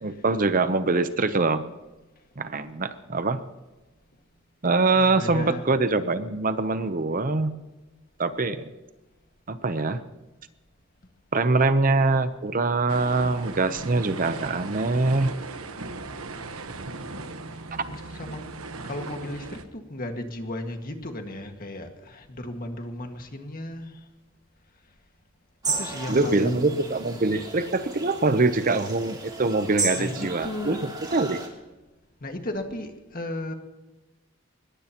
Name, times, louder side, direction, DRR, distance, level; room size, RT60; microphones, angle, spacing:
voice 1, 0.0-1.6 2.4-3.4 4.6-7.5 8.2-8.7 9.5-10.0 11.3-15.3 26.1-30.8 31.1-31.4, right 3 dB, 40° right, 11 dB, 0.8 m, -24 dB
voice 2, 5.0-5.7 17.9-18.4 18.8-24.0 25.7-26.8 29.9-30.9 32.2-33.5, left 1 dB, 45° left, 4 dB, 1.8 m, -35 dB
sound 1, 12.9-19.7, right 3 dB, 90° right, 1.2 m, -38 dB
sound 2, 25.6-31.5, right 4 dB, 20° right, 2.9 m, -34 dB
22.5 x 20.0 x 3.0 m, 1.1 s
head